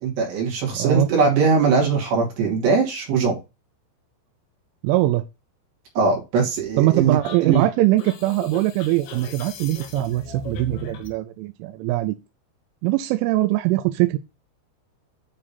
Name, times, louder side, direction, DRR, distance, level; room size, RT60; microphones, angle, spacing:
voice 1, 0.0-3.4 6.0-7.6, right 5 dB, 60° right, 4.0 m, -21 dB
voice 2, 0.8-1.1 4.8-5.2 6.8-12.2 12.8-14.2, right 16 dB, 85° right, 2.8 m, -21 dB
sound 1, 7.2-11.2, left 2 dB, 65° left, 3.2 m, -38 dB
9.8 x 3.7 x 4.1 m
omnidirectional pair, 5.9 m